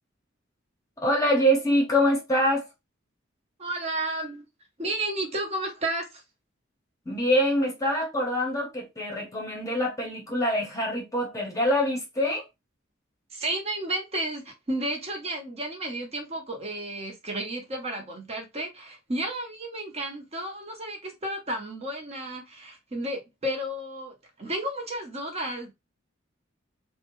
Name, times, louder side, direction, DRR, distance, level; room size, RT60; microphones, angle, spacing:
voice 1, 1.0-2.7 7.1-12.4, equal, 15° left, 0.9 m, -25 dB
voice 2, 3.6-4.4 4.8-6.2 13.3-25.7, right 1 dB, 30° right, 0.8 m, -32 dB
2.7 x 2.2 x 3.0 m
head